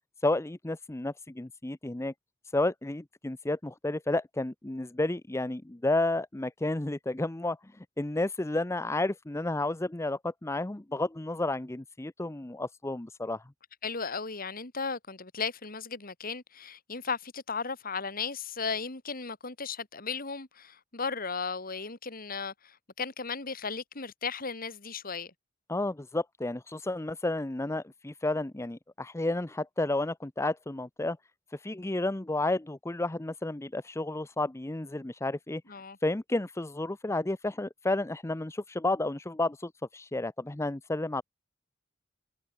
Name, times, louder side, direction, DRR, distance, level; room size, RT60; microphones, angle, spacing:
voice 1, 0.2-2.1 2.5-13.4 25.7-31.2 31.5-35.6 36.0-41.2, left 2 dB, 15° left, 0.6 m, -31 dB
voice 2, 13.8-25.3 35.7-36.0, left 5 dB, 50° left, 2.8 m, -36 dB
head